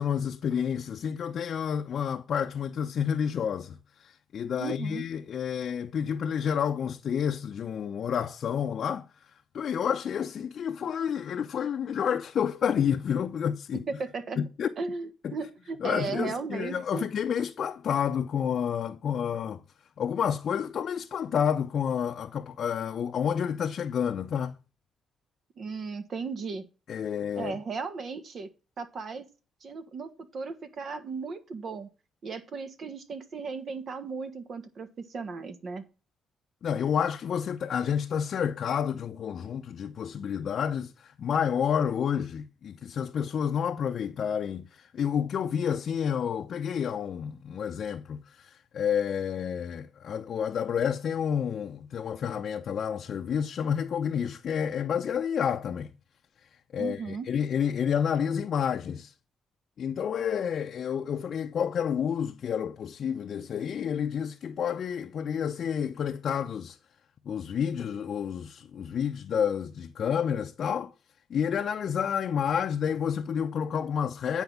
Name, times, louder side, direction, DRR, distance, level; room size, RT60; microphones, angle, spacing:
voice 1, 0.0-9.1 9.5-13.8 14.4-14.7 15.2-15.3 15.8-19.6 20.0-24.5 26.9-27.6 36.6-55.9 56.7-59.1 59.8-66.8 67.3-70.9 71.3-74.4, left 8 dB, 60° left, 0.6 m, -29 dB
voice 2, 4.6-5.1 13.7-14.4 14.8-17.1 25.6-26.6 27.4-28.5 28.8-29.3 29.6-31.9 32.2-35.8 56.8-57.3, right 4 dB, 50° right, 1.5 m, -36 dB
9.4 x 4.5 x 7.1 m
cardioid pair, 90°, 0 cm